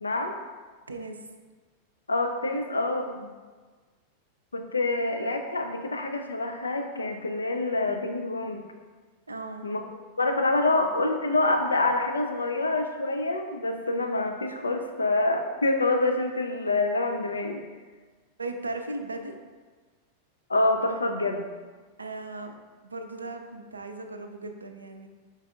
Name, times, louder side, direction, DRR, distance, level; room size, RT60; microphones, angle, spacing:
voice 1, 0.0-0.3 2.1-3.3 4.5-8.6 9.6-9.8 10.2-17.6 20.5-21.5, left 2 dB, 75° left, 5 dB, 0.4 m, -26 dB
voice 2, 0.9-1.3 9.3-9.8 10.8-10.9 18.4-19.3 22.0-22.5 22.8-25.1, right 2 dB, 80° right, 6 dB, 0.4 m, -37 dB
5.0 x 3.9 x 2.4 m, 1.4 s
figure-of-eight pair, 90°, 0 cm